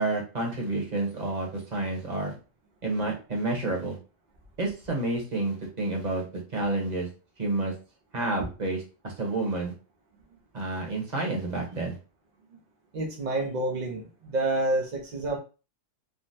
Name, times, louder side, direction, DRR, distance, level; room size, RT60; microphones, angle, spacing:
voice 1, 0.0-2.3 2.8-4.0 4.6-7.1 7.4-7.7 8.1-9.7 10.5-11.9, right 2 dB, 35° right, 0 dB, 0.9 m, -29 dB
voice 2, 12.9-15.4, right 2 dB, 60° right, 0 dB, 0.4 m, -28 dB
3.6 x 2.1 x 2.6 m, 0.33 s
omnidirectional pair, 1.4 m